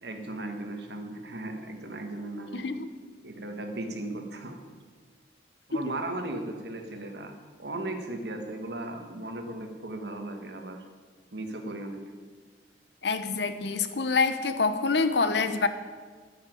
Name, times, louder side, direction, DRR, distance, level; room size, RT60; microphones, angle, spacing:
voice 1, 0.0-2.7 3.2-4.6 5.7-7.3 7.6-10.8 11.3-12.0, right 2 dB, 65° right, 4 dB, 1.5 m, -36 dB
voice 2, 2.5-2.9 5.9-6.0 13.0-15.7, left 4 dB, 65° left, 10 dB, 0.8 m, -26 dB
9.9 x 7.3 x 9.1 m, 1.5 s
head